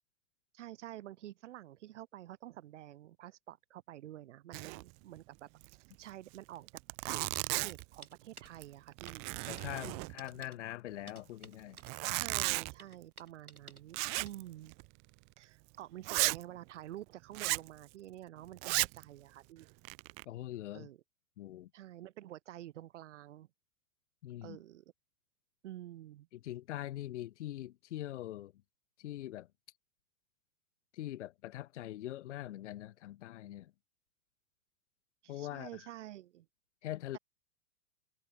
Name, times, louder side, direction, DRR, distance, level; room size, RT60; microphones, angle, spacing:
voice 1, 0.5-5.5 6.0-6.7 7.0-7.2 7.5-9.3 9.8-10.2 12.2-14.7 15.4-19.7 20.7-21.0 21.7-23.5 24.4-24.9 25.6-26.3 35.2-36.5, right 13 dB, 55° right, 5.3 m, -49 dB
Zipper (clothing), 4.5-4.9 5.2-5.3 5.6-5.7 6.3-6.4 6.7-7.9 8.5-8.7 9.0-10.4 11.7-12.7 13.9-14.4 14.7-14.9 15.4-15.5 16.0-16.4 17.3-17.7 18.6-19.0 19.6-20.2, right 36 dB, 15° right, 0.4 m, -35 dB
sound 1, 7.2-8.5 9.1-9.2 9.6-9.7 10.2-10.6 11.1-12.2 12.8-13.8 14.2-14.3, right 3 dB, 85° right, 4.6 m, -52 dB
voice 2, 9.5-11.8 20.3-20.9 21.4-21.7 24.2-24.6 26.4-28.5 29.0-29.5 30.9-33.7 35.3-35.8 36.8-37.2, left 14 dB, 55° left, 1.0 m, -43 dB
figure-of-eight pair, 100°, 43 cm